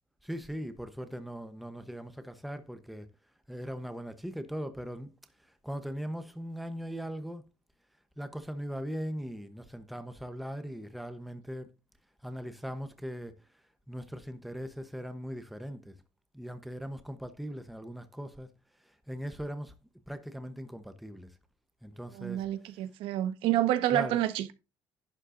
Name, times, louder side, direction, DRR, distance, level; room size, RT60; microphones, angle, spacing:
voice 1, 0.2-3.1 3.5-5.1 5.4-7.5 8.2-11.7 12.2-13.3 13.9-16.0 16.3-18.5 18.8-19.7 20.1-21.3 21.8-22.4 23.9-24.2, equal, ahead, 0.9 m, -39 dB
voice 2, 22.1-24.5, right 13 dB, 80° right, 1.1 m, -28 dB
11.5 x 9.7 x 2.6 m
cardioid pair, 150°, 9 cm